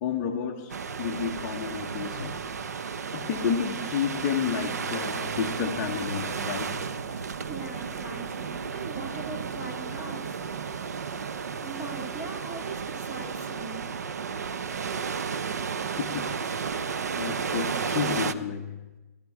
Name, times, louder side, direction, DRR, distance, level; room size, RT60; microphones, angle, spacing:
voice 1, 0.0-2.4 3.1-6.8 16.0-16.4 17.2-18.7, left 7 dB, 25° left, 1 dB, 1.0 m, -31 dB
sound 1, 0.7-18.3, right 6 dB, 70° right, 0.8 m, -33 dB
voice 2, 7.2-10.4 11.6-13.9, right 3 dB, 15° right, 0 dB, 2.1 m, -40 dB
18.0 x 13.5 x 4.8 m, 1.1 s
hypercardioid pair, 165°, 9 cm